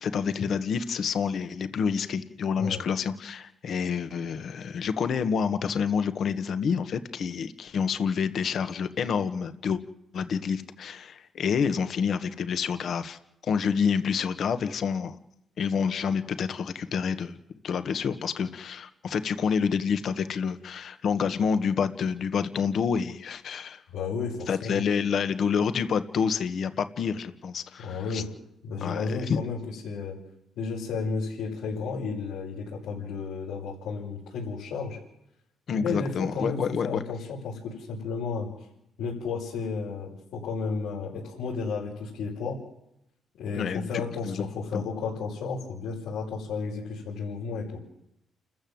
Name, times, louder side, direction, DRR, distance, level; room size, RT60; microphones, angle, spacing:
voice 1, 0.0-9.8 10.1-15.2 15.6-17.4 17.6-23.8 24.5-28.2 28.8-29.4 35.7-37.0 43.5-43.9 44.2-44.5 44.7-44.8, left 6 dB, 60° left, 10 dB, 1.6 m, -28 dB
voice 2, 23.9-24.8 27.8-28.3 28.6-30.2 30.6-35.0 35.7-36.6 36.8-38.5 39.0-42.6 43.4-47.6, left 4 dB, 85° left, -6 dB, 6.4 m, -33 dB
29.5 x 14.5 x 7.9 m, 0.83 s
cardioid pair, 90°, 0 cm